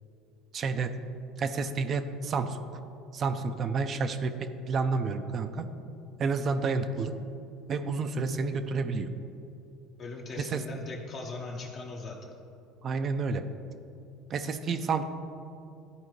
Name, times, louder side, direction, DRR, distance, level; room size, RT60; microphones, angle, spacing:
voice 1, 0.5-1.0 1.4-2.6 3.1-5.7 6.2-7.1 7.7-9.1 10.5-10.6 12.8-13.4 14.3-15.0, right 4 dB, 40° right, 9 dB, 0.4 m, -30 dB
voice 2, 10.0-12.2, left 3 dB, 50° left, -2 dB, 1.0 m, -39 dB
11.0 x 4.3 x 3.2 m, 2.6 s
supercardioid pair, 85°, 0 cm